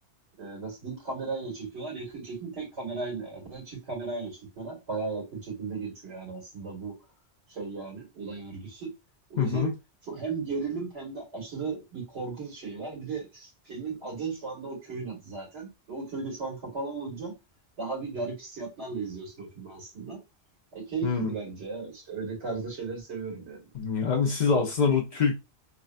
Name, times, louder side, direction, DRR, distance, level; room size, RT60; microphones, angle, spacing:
voice 1, 0.4-6.9 7.5-8.9 9.3-9.7 10.1-17.4 17.8-20.2 20.7-23.6, right 4 dB, 75° right, 2.0 m, -36 dB
voice 2, 9.4-9.7 21.0-21.3 23.7-25.3, left 5 dB, 50° left, 0.6 m, -25 dB
3.6 x 2.2 x 2.4 m
omnidirectional pair, 1.2 m